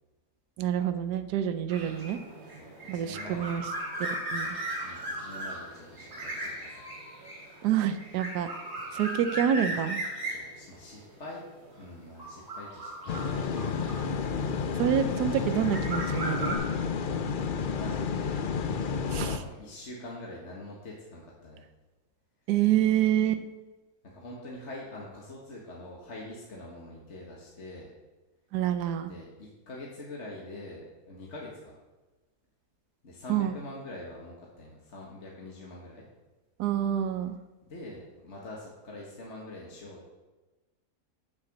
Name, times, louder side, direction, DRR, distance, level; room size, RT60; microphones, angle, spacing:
voice 1, 0.6-2.2 2.9-3.6 4.0-4.5 7.6-8.5 8.9-10.0 14.8-16.6 19.1-19.4 22.5-23.4 28.5-29.1 33.3-33.6 36.6-37.4, right 10 dB, 85° right, 9 dB, 1.3 m, -27 dB
sound 1, 1.7-14.6 15.3-16.5, right 1 dB, 35° right, 3.9 m, -37 dB
voice 2, 2.5-3.5 4.8-6.8 10.2-11.4 11.8-13.4 17.6-18.5 19.2-21.6 24.1-27.9 29.0-31.8 33.0-36.0 37.7-40.1, left 2 dB, 45° left, -3 dB, 1.9 m, -44 dB
sound 2, 13.1-19.4, left 5 dB, 75° left, 0.4 m, -31 dB
9.6 x 7.1 x 6.6 m, 1.2 s
omnidirectional pair, 1.7 m